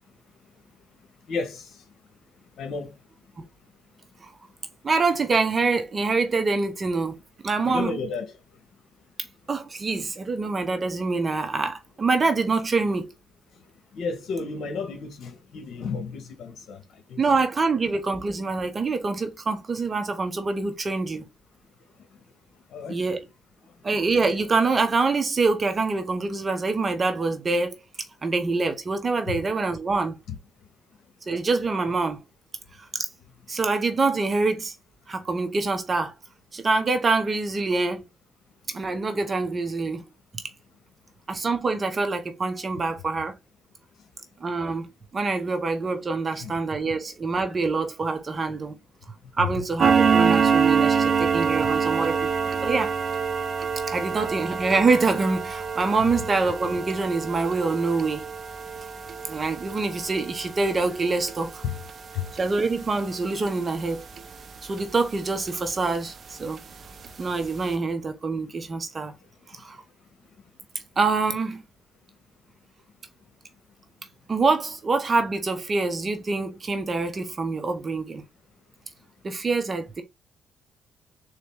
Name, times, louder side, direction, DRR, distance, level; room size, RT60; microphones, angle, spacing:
voice 1, 1.3-1.7 2.6-2.9 7.6-8.3 13.9-16.8 17.1-17.2 22.7-23.0 29.3-29.4 30.3-30.4 31.8-31.9 46.4-46.5 49.4-49.5 56.0-56.1 61.6-61.7 62.1-62.2, left 5 dB, 70° left, 1.4 m, -32 dB
voice 2, 4.8-7.2 7.4-8.0 9.5-13.1 17.2-21.2 22.9-23.2 23.8-27.8 28.2-30.2 31.3-32.2 32.8-33.1 33.5-34.8 35.1-36.1 36.5-38.0 38.7-40.0 41.3-43.3 44.4-44.9 45.1-48.7 49.4-52.9 53.9-58.3 59.3-61.6 62.4-64.0 64.6-66.6 67.2-69.1 69.5-69.8 71.0-71.6 74.3-78.2 79.2-80.0, right 3 dB, 35° right, 1.0 m, -25 dB
sound 1, 49.8-64.9 65.3-65.5 65.9-66.0 66.5-66.6 67.0-67.1 67.4-67.6, right 6 dB, 50° right, 0.6 m, -26 dB
4.0 x 3.1 x 3.5 m
cardioid pair, 90°, 0 cm